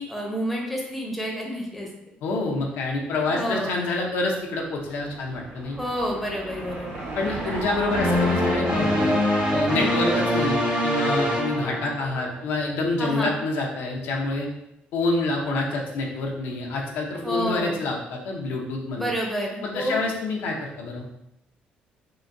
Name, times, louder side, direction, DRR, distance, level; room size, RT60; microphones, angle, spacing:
voice 1, 0.0-1.9 3.3-3.8 5.8-6.9 13.0-13.4 17.2-17.8 19.0-20.1, equal, ahead, -2 dB, 0.7 m, -29 dB
voice 2, 2.2-5.8 7.2-9.1 9.5-10.6 10.8-14.5 14.9-19.1 19.6-21.1, left 2 dB, 85° left, -1 dB, 0.6 m, -27 dB
Car passing by / Engine, 4.2-11.0, right 2 dB, 65° right, 0.9 m, -38 dB
sound 1, 7.9-12.4, left 1 dB, 35° right, 1.2 m, -23 dB
3.8 x 2.2 x 2.5 m, 0.84 s
cardioid pair, 115°, 3 cm